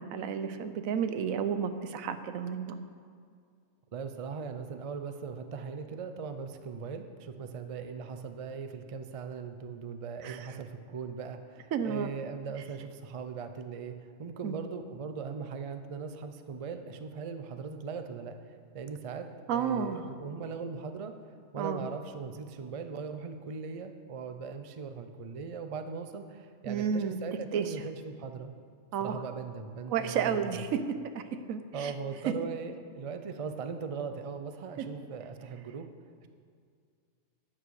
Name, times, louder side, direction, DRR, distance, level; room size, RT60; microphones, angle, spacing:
voice 1, 0.0-2.8 10.2-10.4 11.7-12.1 14.4-14.5 19.5-20.0 21.6-21.8 26.7-27.2 27.5-27.6 28.9-29.2 29.9-30.8 31.1-31.2 31.5-31.9, right 7 dB, 85° right, 10 dB, 1.1 m, -31 dB
voice 2, 3.9-19.3 19.5-21.1 21.5-28.5 29.0-30.6 31.7-35.9, right 5 dB, 45° right, 8 dB, 0.4 m, -39 dB
12.0 x 8.7 x 4.8 m, 2.2 s
omnidirectional pair, 1.4 m